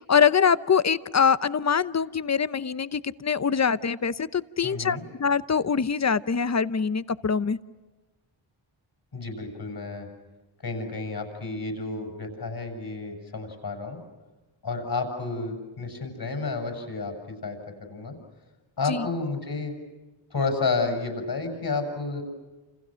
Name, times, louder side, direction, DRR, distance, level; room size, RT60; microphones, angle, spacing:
voice 1, 0.1-7.6 18.9-19.1, left 6 dB, 35° left, 16 dB, 0.8 m, -24 dB
voice 2, 4.6-5.0 9.1-10.1 10.6-14.0 14.6-18.1 18.8-19.7 20.3-22.2, left 3 dB, 50° left, 5 dB, 7.5 m, -31 dB
30.0 x 29.0 x 6.4 m, 1.2 s
wide cardioid pair, 150°, 48 cm